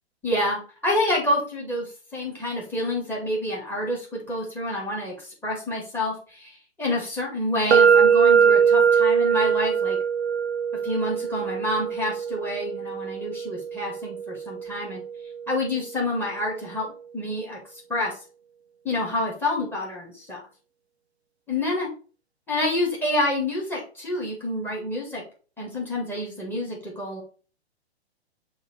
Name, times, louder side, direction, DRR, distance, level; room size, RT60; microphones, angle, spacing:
voice 1, 0.2-10.0 10.8-15.0 15.5-17.6 17.9-18.1 18.8-20.4 21.5-21.9 22.5-25.2 25.6-27.2, left 1 dB, 5° left, -2 dB, 2.2 m, -28 dB
sound 1, 7.7-15.6, right 7 dB, 70° right, 0.5 m, -22 dB
6.5 x 3.2 x 4.6 m, 0.37 s
figure-of-eight pair, 120°, 33 cm